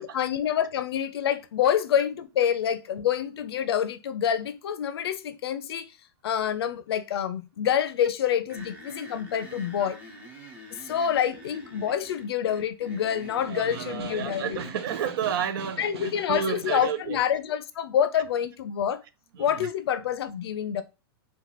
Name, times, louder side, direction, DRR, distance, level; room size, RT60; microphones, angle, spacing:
voice 1, 0.0-5.9 6.2-10.0 10.8-14.6 15.8-19.0 19.4-20.8, left 9 dB, 85° left, 0.6 m, -27 dB
sound 1, 8.5-15.1, right 1 dB, 10° right, 0.6 m, -46 dB
Snare drum, 13.2-17.1, right 4 dB, 85° right, 1.0 m, -42 dB
voice 2, 13.5-17.2 19.3-19.7, right 8 dB, 60° right, 0.5 m, -31 dB
4.3 x 2.3 x 4.2 m
supercardioid pair, 170°, 13 cm